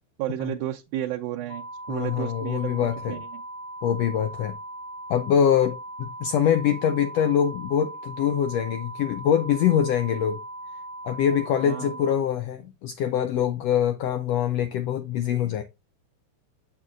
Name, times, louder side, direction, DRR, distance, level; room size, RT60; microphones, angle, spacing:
voice 1, 0.2-3.4 11.7-12.0, right 13 dB, 85° right, 2.1 m, -32 dB
sound 1, 1.5-12.1, right 1 dB, 45° left, 1.2 m, -39 dB
voice 2, 1.9-3.2 3.8-4.6 5.1-10.4 11.0-15.6, left 9 dB, 85° left, 1.4 m, -24 dB
7.4 x 6.6 x 2.5 m
omnidirectional pair, 3.5 m